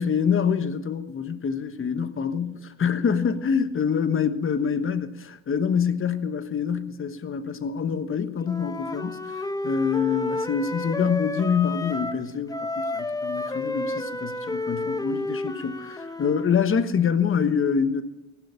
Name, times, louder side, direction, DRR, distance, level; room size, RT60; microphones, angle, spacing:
voice 1, 0.0-5.1 5.5-18.0, left 6 dB, 45° left, 1.2 m, -26 dB
Wind instrument woodwind instrument, 8.4-12.2 12.5-16.5, left 2 dB, 10° left, 1.0 m, -31 dB
16.0 x 11.5 x 6.9 m
cardioid pair, 90°, 30 cm